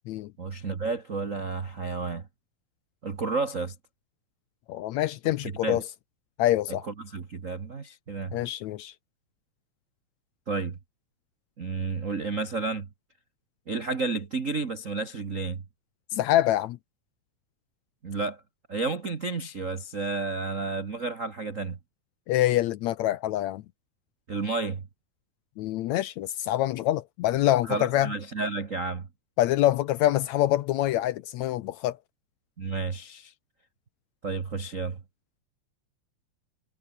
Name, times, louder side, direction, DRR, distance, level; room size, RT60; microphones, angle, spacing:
voice 1, 0.4-2.3 3.0-3.7 5.4-5.8 6.9-8.4 10.5-10.8 11.6-12.9 13.7-15.6 18.0-18.4 18.7-21.8 24.3-24.9 27.7-29.1 32.6-33.3 34.2-35.0, right 4 dB, 85° right, 0.7 m, -31 dB
voice 2, 4.7-5.8 6.4-6.8 8.3-8.9 16.1-16.8 22.3-23.6 25.6-28.1 29.4-32.0, left 14 dB, 80° left, 1.6 m, -25 dB
omnidirectional pair, 4.0 m